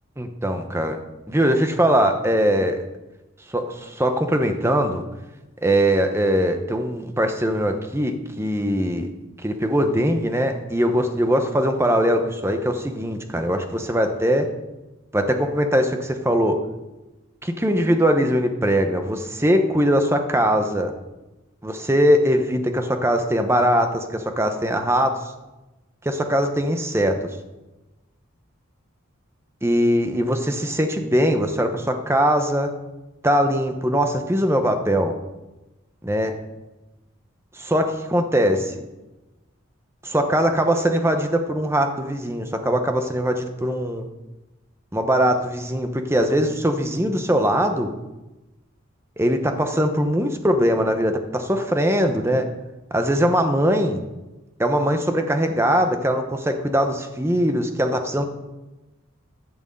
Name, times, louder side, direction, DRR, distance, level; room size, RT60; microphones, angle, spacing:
voice 1, 0.2-1.0 1.3-2.8 3.5-5.0 5.6-9.1 9.4-14.5 15.1-16.6 17.4-20.9 21.6-25.2 26.0-27.2 29.6-32.7 33.2-35.2 36.0-36.3 37.6-38.7 40.0-44.0 44.9-47.9 49.2-52.5 52.9-54.0 54.6-58.3, equal, 10° right, 6 dB, 0.9 m, -21 dB
11.0 x 6.2 x 7.7 m, 1.1 s
head